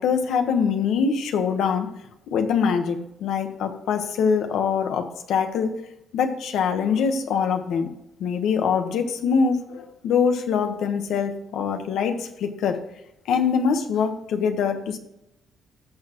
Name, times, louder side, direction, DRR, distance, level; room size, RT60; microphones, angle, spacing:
voice 1, 0.0-1.9 2.3-5.8 6.1-7.9 8.2-12.8 13.3-15.0, left 6 dB, 80° left, 6 dB, 1.3 m, -23 dB
15.5 x 6.3 x 3.1 m, 0.84 s
cardioid pair, 90°, 0 cm